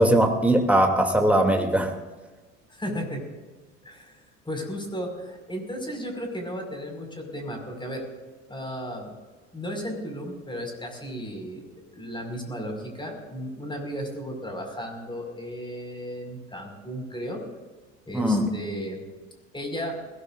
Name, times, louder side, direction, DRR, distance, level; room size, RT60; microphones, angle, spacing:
voice 1, 0.0-1.9 18.1-18.5, right 1 dB, 5° right, 3 dB, 2.8 m, -20 dB
voice 2, 2.7-3.3 3.8-4.2 4.4-8.0 8.5-9.1 9.5-11.6 11.9-17.4 18.1-19.0 19.5-19.9, equal, 15° left, 2 dB, 5.4 m, -34 dB
21.0 x 17.0 x 2.6 m, 1.3 s
hypercardioid pair, 65°, 37 cm